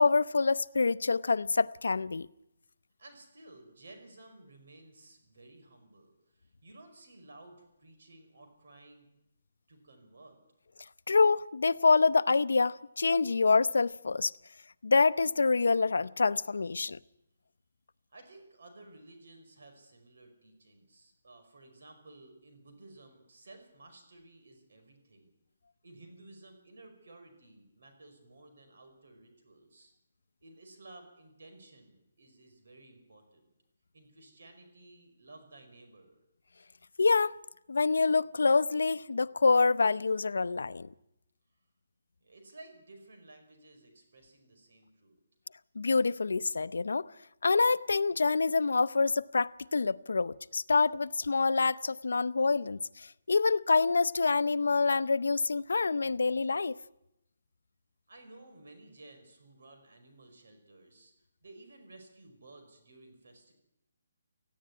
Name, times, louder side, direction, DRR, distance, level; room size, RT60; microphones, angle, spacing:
voice 1, 0.0-2.3 11.1-14.3 14.8-17.0 37.0-37.4 37.7-40.9 45.8-47.1 47.4-56.8, left 4 dB, 85° left, 0.7 m, -26 dB
voice 2, 3.0-9.1 9.7-10.4 18.1-25.3 25.8-29.9 30.4-33.5 33.9-36.2 42.2-45.1 58.1-63.5, right 2 dB, 65° right, 5.1 m, -55 dB
18.0 x 15.0 x 9.8 m
hypercardioid pair, 175°, 0 cm